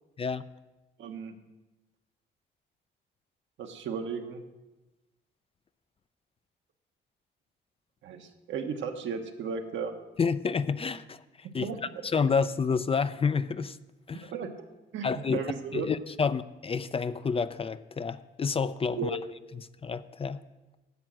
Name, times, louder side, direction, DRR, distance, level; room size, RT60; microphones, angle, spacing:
voice 1, 1.0-1.3 3.6-4.4 8.0-9.9 11.6-11.8 14.2-15.9 18.9-19.2, right 5 dB, 70° right, 5 dB, 1.2 m, -35 dB
voice 2, 10.2-11.2 11.5-11.7 12.0-13.8 14.1-14.3 15.0-15.4 15.7-19.2 19.8-20.4, left 5 dB, 30° left, 13 dB, 0.4 m, -29 dB
10.5 x 7.5 x 6.1 m, 1.1 s
cardioid pair, 90°, 20 cm